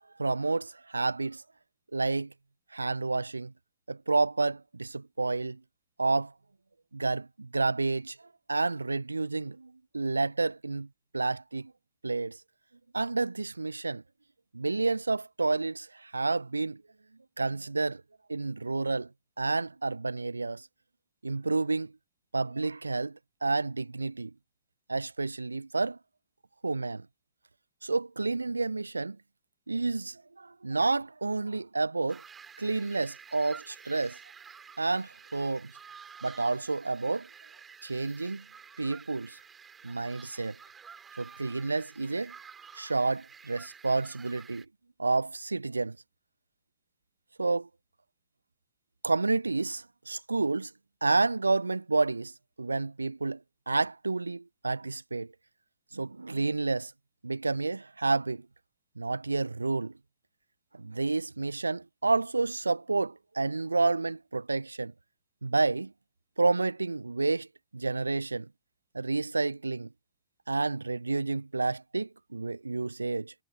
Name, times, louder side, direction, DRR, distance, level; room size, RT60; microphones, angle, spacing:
voice 1, 0.2-1.4 1.9-2.3 2.7-3.5 3.9-5.6 6.0-6.3 6.9-8.2 8.5-10.9 11.1-11.7 12.0-12.4 12.9-14.0 14.5-16.8 17.4-18.0 18.3-19.1 19.4-20.7 21.2-21.9 22.3-24.3 24.9-26.0 26.6-27.1 27.8-29.2 29.7-32.2 32.6-34.2 34.8-35.7 36.2-37.3 37.8-38.4 38.8-39.4 39.8-40.6 41.2-42.3 42.7-44.7 45.0-46.0 47.4-47.7 49.0-50.7 51.0-52.3 52.6-53.4 53.7-55.3 55.9-56.9 57.2-58.5 59.0-59.9 60.7-64.9 65.4-65.9 66.4-67.5 67.7-68.5 68.9-69.9 70.5-73.3, right 3 dB, 80° right, 0.7 m, -30 dB
sound 1, 32.1-44.6, right 6 dB, 20° right, 7.2 m, -51 dB
figure-of-eight pair, 90°, 0 cm